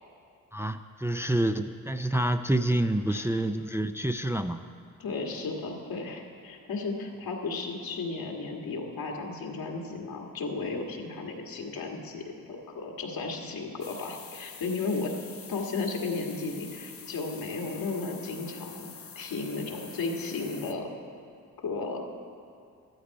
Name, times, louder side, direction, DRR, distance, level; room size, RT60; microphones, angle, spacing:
voice 1, 0.5-4.6, right 1 dB, 5° right, 7 dB, 0.5 m, -28 dB
voice 2, 5.0-15.1 15.5-18.9 19.2-20.9 21.6-22.0, left 3 dB, 80° left, 0 dB, 1.8 m, -34 dB
sound 1, 13.8-20.7, left 6 dB, 40° left, 0.8 m, -46 dB
14.0 x 12.0 x 4.8 m, 2.3 s
cardioid pair, 60°, 35 cm